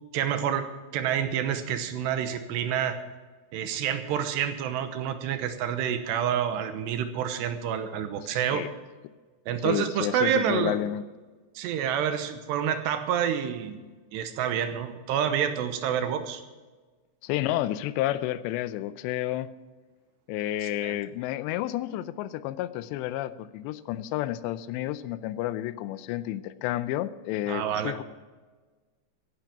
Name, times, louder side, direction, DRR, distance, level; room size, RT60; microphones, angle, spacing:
voice 1, 0.1-3.0 3.5-8.7 9.5-10.8 11.6-13.8 14.1-16.4 20.6-21.0 27.5-28.0, right 9 dB, 80° right, 9 dB, 2.9 m, -28 dB
voice 2, 8.2-8.7 9.6-11.0 17.2-19.5 20.3-28.0, left 13 dB, 80° left, 15 dB, 2.7 m, -31 dB
15.0 x 11.0 x 6.0 m, 1.3 s
omnidirectional pair, 5.2 m